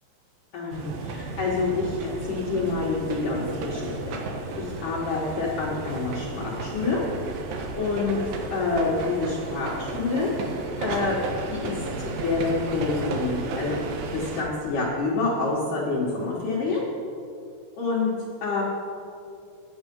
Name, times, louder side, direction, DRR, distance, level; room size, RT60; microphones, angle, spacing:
voice 1, 0.5-4.2 4.6-7.0 7.8-11.2 11.5-13.8 14.1-16.8 17.8-18.1 18.4-18.6, left 3 dB, 60° left, -6 dB, 2.5 m, -27 dB
sound 1, 0.7-14.4, right 3 dB, 70° right, 2.4 m, -33 dB
10.5 x 9.5 x 5.4 m, 2.4 s
omnidirectional pair, 5.1 m